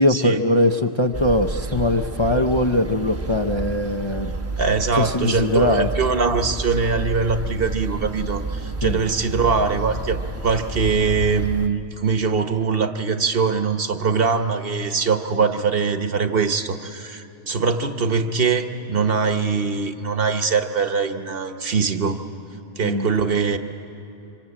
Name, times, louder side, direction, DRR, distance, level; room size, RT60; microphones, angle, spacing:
voice 1, 0.0-4.3 4.9-5.9 8.8-9.0 22.8-23.1, left 1 dB, 30° left, 4 dB, 0.6 m, -21 dB
sound 1, 1.1-11.7, right 2 dB, 15° right, 0.9 m, -30 dB
voice 2, 4.6-22.2 22.8-23.6, right 5 dB, 55° right, 8 dB, 1.2 m, -22 dB
25.5 x 25.0 x 8.7 m, 3.0 s
omnidirectional pair, 1.2 m